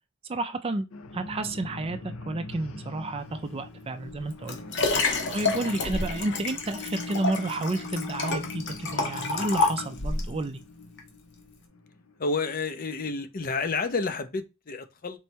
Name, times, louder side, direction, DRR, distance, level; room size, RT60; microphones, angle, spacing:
voice 1, 0.3-0.9 1.1-4.6 4.9-10.6, right 2 dB, 25° right, 0.4 m, -31 dB
sound 1, 0.9-13.4, left 2 dB, 80° left, 0.7 m, -42 dB
Liquid, 4.1-10.3 11.0-11.1, left 3 dB, 60° left, 1.0 m, -29 dB
voice 2, 5.0-5.4 5.8-6.0 12.2-15.2, left 3 dB, 45° left, 0.6 m, -31 dB
4.5 x 3.2 x 2.8 m
head